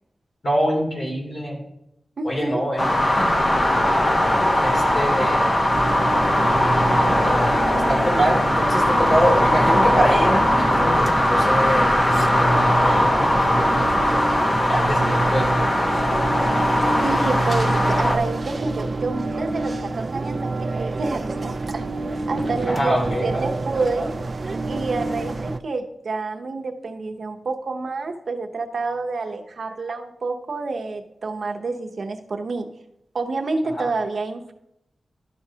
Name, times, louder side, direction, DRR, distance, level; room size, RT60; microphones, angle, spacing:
voice 1, 0.4-1.6 2.2-3.3 4.5-5.5 7.2-13.9 14.7-15.7 22.7-23.5 33.7-33.9, equal, 50° left, -3 dB, 2.9 m, -25 dB
voice 2, 2.2-2.6 5.2-5.3 17.0-21.8 22.3-24.1 24.7-32.7 33.1-34.5, right 3 dB, 60° right, 4 dB, 0.8 m, -28 dB
sound 1, 2.8-18.2, left 1 dB, 30° left, 0.9 m, -20 dB
sound 2, 5.7-25.6, right 3 dB, 40° right, 0.3 m, -27 dB
12.0 x 6.1 x 2.8 m, 0.81 s
wide cardioid pair, 140°, 0 cm